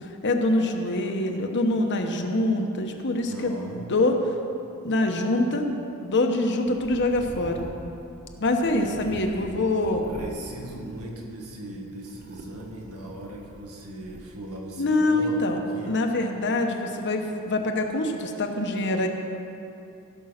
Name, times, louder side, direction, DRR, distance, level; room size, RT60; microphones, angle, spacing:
voice 1, 0.0-4.2 4.8-5.8 6.0-7.7 8.4-10.1 14.8-15.6 15.9-19.1, left 2 dB, 55° left, 4 dB, 1.0 m, -25 dB
voice 2, 3.1-3.9 8.7-16.0 17.0-17.3, right 1 dB, 80° right, -1 dB, 1.9 m, -39 dB
sound 1, 6.6-11.4 11.8-14.2, right 1 dB, 40° right, 0.9 m, -44 dB
16.0 x 5.5 x 6.4 m, 2.8 s
head